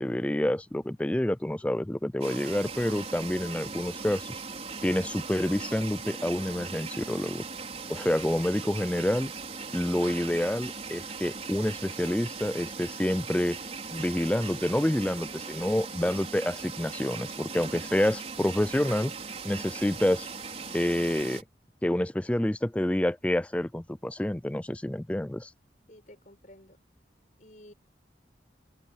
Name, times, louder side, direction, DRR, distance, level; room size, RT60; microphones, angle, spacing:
voice 1, 0.0-4.4 4.8-7.5 7.9-9.3 9.7-13.6 13.9-19.1 19.4-20.3 20.7-21.4 21.8-25.5, left 1 dB, 5° left, 0.3 m, -28 dB
sound 1, 2.2-21.4, right 4 dB, 35° right, 5.3 m, -39 dB
voice 2, 25.9-26.8 27.4-27.7, left 1 dB, 45° left, 5.7 m, -52 dB
head